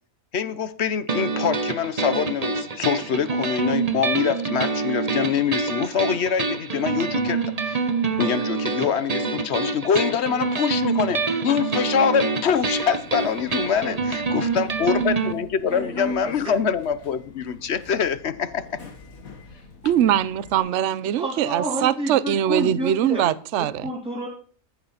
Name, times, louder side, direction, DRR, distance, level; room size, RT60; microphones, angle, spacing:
voice 1, 0.3-7.8 8.2-18.8, left 7 dB, 55° left, 1.0 m, -24 dB
sound 1, 1.1-15.3, right 4 dB, 30° right, 0.9 m, -26 dB
Subway metro underground, 12.5-20.6, left 2 dB, 70° left, 2.2 m, -41 dB
voice 2, 19.8-23.8, right 11 dB, 60° right, 0.9 m, -22 dB
voice 3, 21.2-23.3 23.6-24.3, right 1 dB, 5° right, 3.8 m, -29 dB
14.5 x 6.8 x 5.6 m
omnidirectional pair, 1.5 m